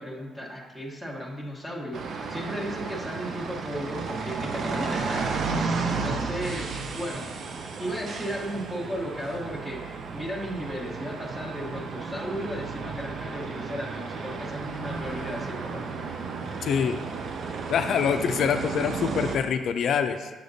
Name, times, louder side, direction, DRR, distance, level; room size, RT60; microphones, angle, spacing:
voice 1, 0.0-7.3 7.8-15.8, equal, 5° right, -2 dB, 1.1 m, -35 dB
sound 1, 1.9-19.4, right 4 dB, 60° right, 0.5 m, -33 dB
voice 2, 16.6-17.0 17.7-20.3, left 7 dB, 70° left, 8 dB, 0.4 m, -25 dB
7.0 x 5.0 x 2.7 m, 1.3 s
cardioid pair, 90°, 0 cm